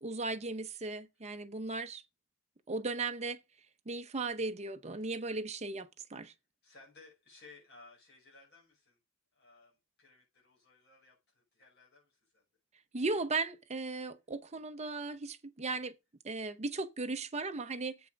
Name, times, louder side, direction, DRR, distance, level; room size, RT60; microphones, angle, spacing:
voice 1, 0.0-2.0 2.7-3.4 3.9-6.3 12.9-15.9 16.2-18.0, right 3 dB, 30° right, 0.8 m, -36 dB
voice 2, 6.2-9.0 9.3-12.4, left 3 dB, 55° left, 5.8 m, -59 dB
8.0 x 5.6 x 5.1 m
head